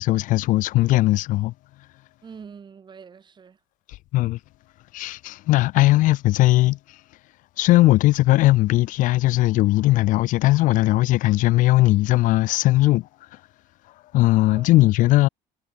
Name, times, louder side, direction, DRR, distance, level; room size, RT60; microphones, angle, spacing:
voice 1, 0.0-1.5 4.1-4.4 4.9-6.8 7.6-13.0 14.1-15.3, left 17 dB, 60° left, 0.5 m, -18 dB
voice 2, 2.2-3.6 14.5-15.1, right 6 dB, 30° right, 3.2 m, -45 dB
cardioid pair, 110°, 15 cm